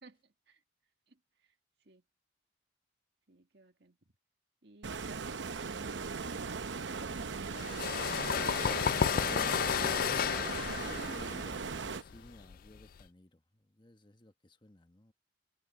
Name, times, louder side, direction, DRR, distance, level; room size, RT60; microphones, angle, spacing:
voice 1, 0.0-0.6 1.1-1.6 1.8-2.0 3.3-4.0 4.6-8.0, right 2 dB, 60° right, 2.1 m, -57 dB
Stream, 4.8-12.0, right 4 dB, 80° right, 0.8 m, -38 dB
sound 1, 7.0-12.5, left 3 dB, 90° left, 1.5 m, -61 dB
sound 2, 7.5-13.0, left 8 dB, 50° left, 0.3 m, -32 dB
voice 2, 9.2-15.1, left 1 dB, 25° left, 1.3 m, -54 dB
head